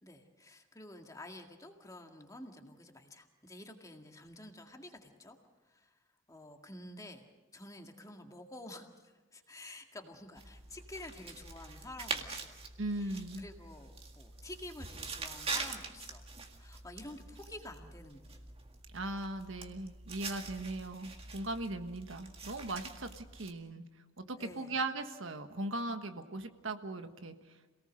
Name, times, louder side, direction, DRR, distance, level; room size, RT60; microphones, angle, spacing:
voice 1, 0.0-5.4 5.6-6.0 6.3-12.6 12.9-16.2 16.6-18.8 24.4-24.8, left 1 dB, 20° left, 3 dB, 2.0 m, -50 dB
sound 1, 10.4-23.5, right 4 dB, 30° right, 1.9 m, -44 dB
voice 2, 12.8-13.4 18.9-23.8 24.2-27.3, right 2 dB, 80° right, 7 dB, 1.5 m, -39 dB
27.0 x 18.5 x 6.5 m, 1.2 s
head